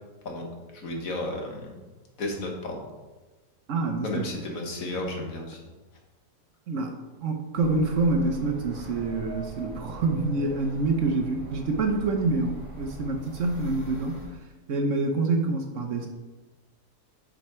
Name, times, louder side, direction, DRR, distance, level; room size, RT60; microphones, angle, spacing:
voice 1, 0.7-1.8 2.2-2.8 4.0-5.6, left 1 dB, 60° left, 1 dB, 1.6 m, -33 dB
voice 2, 3.7-4.3 6.7-6.9 7.2-14.2 14.7-16.1, right 3 dB, 60° right, 3 dB, 1.0 m, -26 dB
sound 1, 7.6-14.3, right 1 dB, 40° left, 2.5 m, -42 dB
6.7 x 4.9 x 4.3 m, 1.2 s
omnidirectional pair, 1.7 m